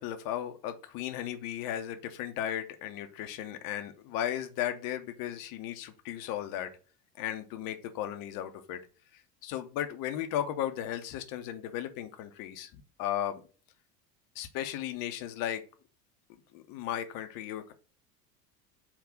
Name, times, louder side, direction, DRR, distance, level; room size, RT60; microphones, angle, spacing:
voice 1, 0.0-6.7 7.1-8.8 9.1-13.4 14.3-15.6 16.5-17.7, left 11 dB, 45° left, 8 dB, 0.7 m, -35 dB
3.6 x 2.3 x 3.7 m, 0.37 s
hypercardioid pair, 80°, 48 cm